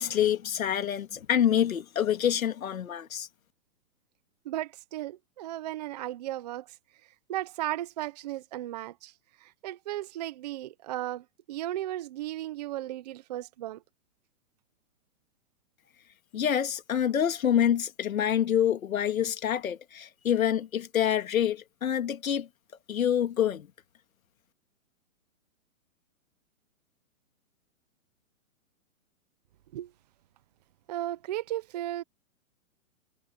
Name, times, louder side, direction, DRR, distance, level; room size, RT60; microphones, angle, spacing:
voice 1, 0.0-3.3 16.3-22.5 22.9-23.7, left 9 dB, 75° left, 2.2 m, -26 dB
voice 2, 4.4-6.8 7.3-13.8 19.2-19.3 29.7-29.9 30.9-32.0, right 14 dB, 30° right, 0.7 m, -35 dB
hypercardioid pair, 160°, 41 cm